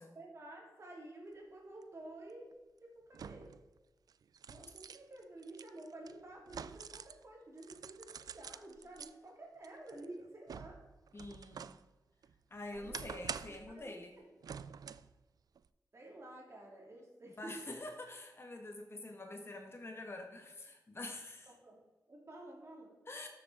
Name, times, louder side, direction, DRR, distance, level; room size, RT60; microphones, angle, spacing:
voice 1, 0.1-2.5 2.8-3.5 4.5-10.8 12.7-13.1 13.4-14.3 15.9-17.6 21.5-23.0, right 1 dB, 45° right, -1 dB, 2.9 m, -51 dB
sound 1, 1.8-1.9 3.1-3.6 4.1-7.2 7.6-9.1 9.6-11.8 12.2-13.7 14.4-15.1 15.6-15.7, right 7 dB, 70° right, 0.3 m, -47 dB
voice 2, 11.1-11.7 12.5-14.1 17.4-21.5 23.1-23.3, left 2 dB, 40° left, 3 dB, 1.5 m, -46 dB
13.5 x 7.2 x 3.6 m, 1.2 s
wide cardioid pair, 85°, 7 cm